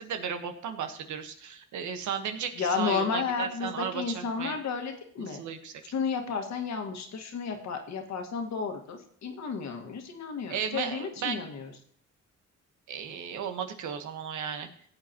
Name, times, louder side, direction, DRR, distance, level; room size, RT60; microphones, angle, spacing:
voice 1, 0.0-4.6 5.2-5.8 10.5-11.4 12.9-14.7, right 7 dB, 75° right, 7 dB, 1.3 m, -35 dB
voice 2, 2.6-5.4 5.9-11.7, left 5 dB, 65° left, 4 dB, 1.8 m, -32 dB
16.0 x 8.0 x 2.9 m, 0.62 s
cardioid pair, 90°, 30 cm